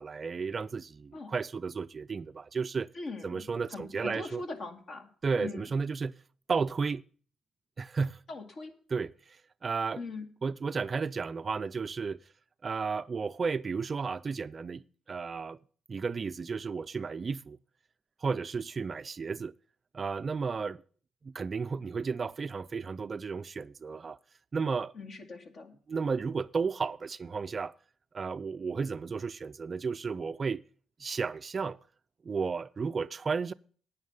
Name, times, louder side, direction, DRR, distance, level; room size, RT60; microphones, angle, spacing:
voice 1, 0.0-2.9 3.2-4.4 5.2-6.1 6.5-7.0 7.8-8.2 8.9-9.1 9.6-10.0 10.4-12.2 12.6-14.8 15.1-15.6 15.9-17.6 18.2-19.5 19.9-20.8 21.2-24.2 24.5-24.9 25.9-27.7 28.1-30.6 31.0-31.8 32.2-33.5, right 5 dB, 35° right, 0.4 m, -33 dB
voice 2, 2.9-5.1 5.4-5.6 8.3-8.7 10.0-10.3 24.9-25.8, left 3 dB, 50° left, 2.0 m, -41 dB
9.4 x 9.3 x 5.3 m
cardioid pair, 90°, 0 cm